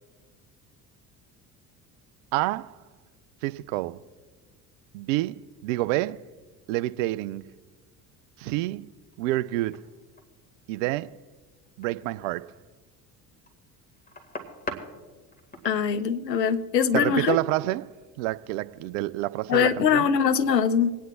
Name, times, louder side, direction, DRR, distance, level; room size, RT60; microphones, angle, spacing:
voice 1, 2.3-2.8 3.4-4.0 4.9-6.2 6.7-7.5 8.4-8.9 9.2-9.8 10.7-11.1 11.8-12.5 16.9-17.9 18.2-20.1, right 17 dB, 50° right, 0.5 m, -28 dB
sound 1, 9.1-9.4 9.7-10.2 11.6-12.3 13.0-14.9 15.2-15.8, left 2 dB, 20° left, 1.9 m, -39 dB
voice 2, 15.6-17.4 19.5-20.9, left 7 dB, 80° left, 0.7 m, -22 dB
27.0 x 9.2 x 2.3 m
figure-of-eight pair, 60°, 49 cm